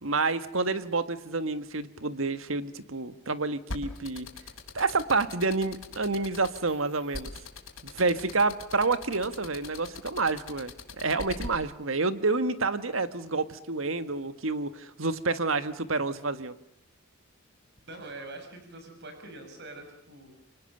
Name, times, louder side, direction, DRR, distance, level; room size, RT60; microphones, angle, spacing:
voice 1, 0.0-4.3 4.7-7.3 7.9-16.5, right 3 dB, 75° right, 11 dB, 1.7 m, -29 dB
sound 1, 3.7-11.5, left 3 dB, 75° left, 6.1 m, -40 dB
voice 2, 17.9-20.5, right 2 dB, 55° right, 6 dB, 6.7 m, -44 dB
29.0 x 25.0 x 6.8 m, 0.73 s
head